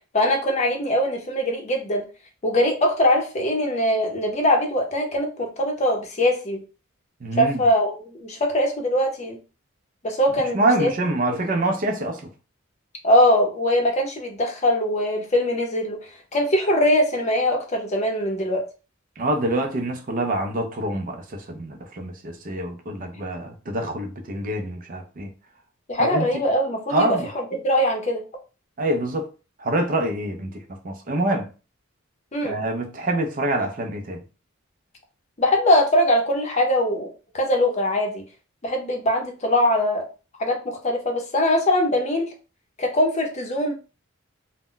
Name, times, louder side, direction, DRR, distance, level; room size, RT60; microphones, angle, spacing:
voice 1, 0.1-2.1 2.4-6.6 7.4-9.4 10.0-10.9 13.0-18.6 25.9-27.1 27.6-28.2 32.3-32.6 35.4-38.2 38.6-40.0 40.4-42.3 42.8-43.7, left 1 dB, 35° left, 0.6 m, -22 dB
voice 2, 7.2-7.6 10.5-12.2 19.2-25.3 26.0-26.3 26.9-27.3 28.8-29.3 29.6-31.5 32.4-34.2, right 1 dB, 40° right, 0.4 m, -25 dB
2.1 x 2.1 x 3.7 m
head